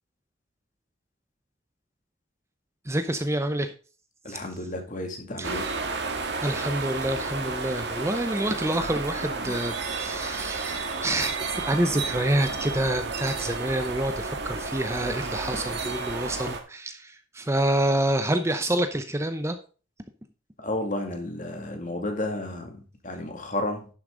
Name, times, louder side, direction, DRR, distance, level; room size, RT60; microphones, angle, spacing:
voice 1, 2.9-3.7 4.3-4.4 5.4-5.7 6.4-19.6, right 1 dB, 15° right, 8 dB, 0.7 m, -27 dB
voice 2, 4.2-5.7 20.6-23.9, left 1 dB, 40° left, 4 dB, 2.5 m, -32 dB
sound 1, 5.4-16.6, right 3 dB, 60° right, 1.9 m, -32 dB
sound 2, 8.8-10.3, right 1 dB, 20° left, 4.8 m, -43 dB
11.0 x 7.2 x 3.8 m, 0.36 s
head